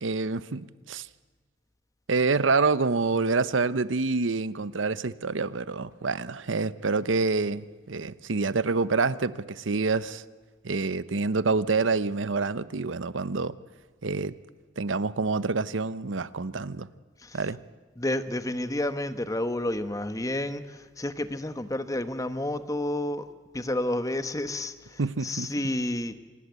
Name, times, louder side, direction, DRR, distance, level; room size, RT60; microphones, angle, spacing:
voice 1, 0.0-1.1 2.1-10.2 10.6-13.6 14.0-14.3 14.8-16.9 17.3-17.6 25.0-25.5, right 4 dB, 80° right, 16 dB, 0.8 m, -27 dB
voice 2, 18.0-23.2 23.5-26.1, left 1 dB, 15° left, 11 dB, 1.1 m, -30 dB
26.0 x 19.5 x 8.2 m, 1.4 s
head